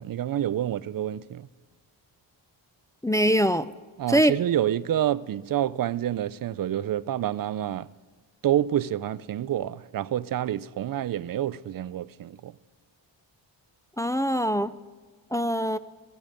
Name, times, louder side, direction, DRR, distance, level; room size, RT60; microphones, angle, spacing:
voice 1, 0.0-1.5 4.0-7.9 8.4-12.5, right 11 dB, 50° right, 0.5 m, -28 dB
voice 2, 3.0-3.7 4.1-4.4 14.0-14.7 15.3-15.8, equal, 10° left, 0.4 m, -23 dB
17.0 x 15.0 x 5.2 m
cardioid pair, 75°, 46 cm